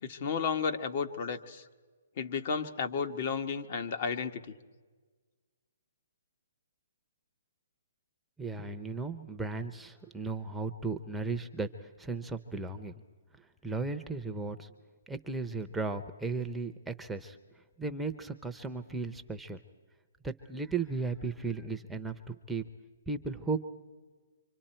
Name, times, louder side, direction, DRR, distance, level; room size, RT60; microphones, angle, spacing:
voice 1, 0.0-1.6 2.2-4.4, left 6 dB, 50° left, 6 dB, 1.4 m, -33 dB
voice 2, 8.4-13.0 13.4-14.7 15.1-19.6 20.2-22.6 23.1-23.6, right 4 dB, 5° right, 7 dB, 0.8 m, -36 dB
25.5 x 25.5 x 4.5 m, 1.4 s
hypercardioid pair, 145°, 0 cm